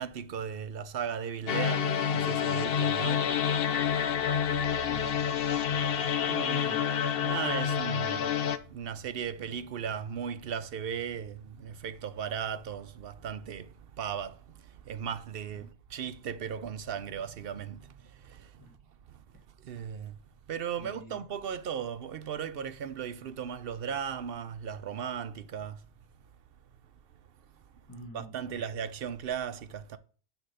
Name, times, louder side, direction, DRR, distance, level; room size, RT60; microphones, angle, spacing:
voice 1, 0.0-3.2 3.9-4.0 4.7-4.8 6.3-6.8 7.2-8.3 8.7-18.5 19.6-20.2 20.5-25.8 28.1-30.0, right 8 dB, 60° right, 0.9 m, -37 dB
sound 1, 1.5-8.6, left 8 dB, 65° left, 0.9 m, -28 dB
voice 2, 4.9-5.3 6.6-6.8 18.6-18.7 20.8-21.2 27.9-28.7, equal, 20° left, 1.2 m, -48 dB
9.8 x 3.5 x 6.6 m
omnidirectional pair, 1.1 m